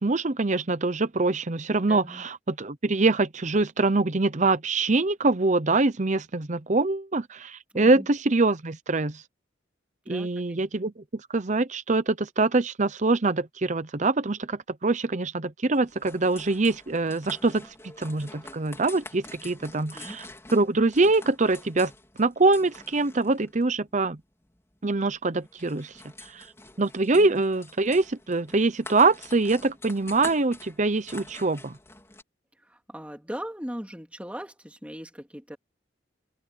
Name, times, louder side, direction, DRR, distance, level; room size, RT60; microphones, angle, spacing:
voice 1, 0.0-9.2 10.1-21.9 22.2-24.2 24.8-26.5 26.8-31.8, right 3 dB, 40° right, 0.8 m, -24 dB
voice 2, 1.9-2.2 7.7-8.1 10.1-10.3 19.7-20.2 27.1-27.4 32.7-35.6, equal, 5° right, 2.5 m, -39 dB
sound 1, 15.7-32.2, left 2 dB, 15° left, 4.0 m, -46 dB
open air
head